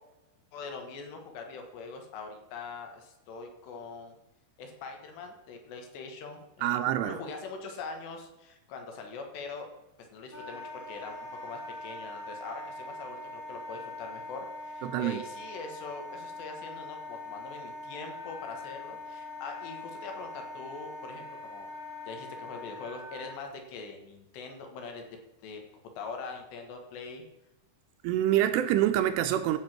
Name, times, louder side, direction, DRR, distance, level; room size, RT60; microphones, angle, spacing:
voice 1, 0.5-4.2 4.6-6.7 7.0-9.7 10.1-21.7 22.1-25.0 25.4-25.6 26.0-27.3, left 4 dB, 75° left, 4 dB, 3.5 m, -42 dB
voice 2, 6.6-7.2 14.8-15.2 28.0-29.6, right 12 dB, 80° right, 9 dB, 2.6 m, -26 dB
Wind instrument woodwind instrument, 10.3-23.4, left 2 dB, 35° left, 1.4 m, -42 dB
14.0 x 5.0 x 6.0 m, 1.0 s
omnidirectional pair, 5.1 m